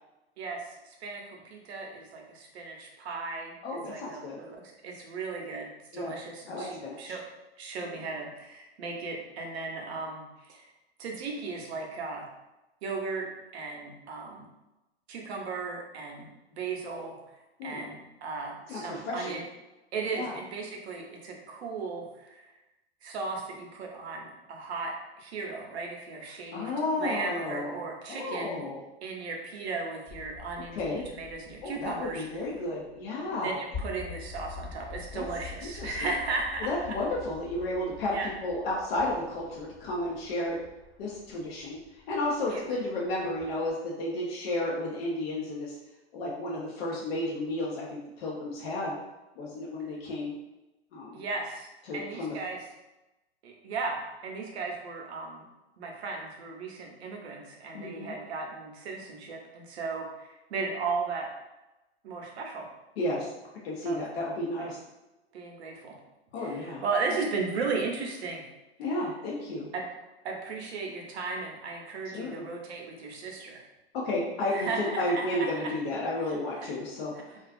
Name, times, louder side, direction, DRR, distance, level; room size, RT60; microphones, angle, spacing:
voice 1, 0.4-3.6 3.9-7.2 7.6-10.7 11.0-12.3 12.8-14.5 15.1-19.4 19.9-22.5 23.0-26.7 27.0-28.7 29.0-32.4 33.4-37.0 38.1-38.3 42.5-42.6 51.1-52.7 53.4-55.4 55.8-61.3 62.0-62.7 63.8-64.0 64.6-64.7 65.3-66.0 66.4-68.4 69.7-69.9 70.2-73.7 74.5-75.7 76.2-76.7 77.3-77.4, right 4 dB, 80° right, 1 dB, 0.7 m, -36 dB
voice 2, 3.6-4.4 5.9-6.2 6.5-7.1 7.8-7.9 17.6-17.8 18.7-19.4 20.1-20.3 26.5-27.8 28.1-28.8 30.8-31.0 31.6-33.6 35.1-35.2 35.8-35.9 36.6-40.6 41.0-41.8 42.1-45.7 46.1-49.0 49.4-50.3 50.9-51.2 51.9-52.4 57.7-58.1 63.0-63.3 63.6-64.8 66.3-66.8 68.8-69.7 72.1-72.4 73.9-77.1, left 1 dB, 65° left, -4 dB, 0.7 m, -32 dB
sound 1, 30.1-43.7, left 5 dB, 35° left, 1.2 m, -46 dB
2.4 x 2.3 x 2.3 m, 1.0 s
hypercardioid pair, 120°, 32 cm